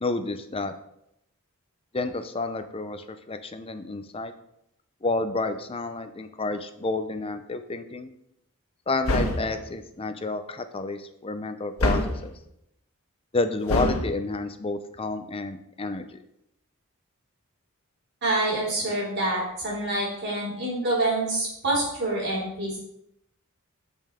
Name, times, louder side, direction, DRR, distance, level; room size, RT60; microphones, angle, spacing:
voice 1, 0.0-0.7 1.9-4.3 5.0-8.1 8.9-12.3 13.3-16.2, left 3 dB, 25° left, 10 dB, 0.6 m, -30 dB
sound 1, 9.0-9.6 11.8-12.3 13.7-14.1, left 1 dB, 80° left, 1.3 m, -24 dB
voice 2, 18.2-22.8, right 2 dB, 50° right, -5 dB, 3.7 m, -26 dB
12.5 x 5.4 x 3.7 m, 0.80 s
head